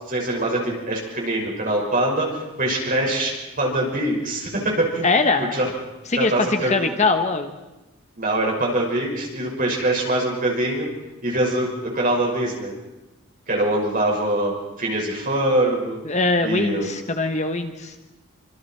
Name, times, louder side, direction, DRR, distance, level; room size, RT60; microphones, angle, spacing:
voice 1, 0.1-3.3 3.6-5.1 5.5-5.7 6.1-6.9 8.2-10.9 11.2-11.7 11.9-12.7 13.5-16.0 16.4-16.9, right 1 dB, 40° right, -1 dB, 6.0 m, -23 dB
voice 2, 5.0-5.5 6.1-7.5 16.0-17.9, left 3 dB, 30° left, 6 dB, 1.2 m, -22 dB
27.5 x 26.0 x 4.7 m, 1.0 s
head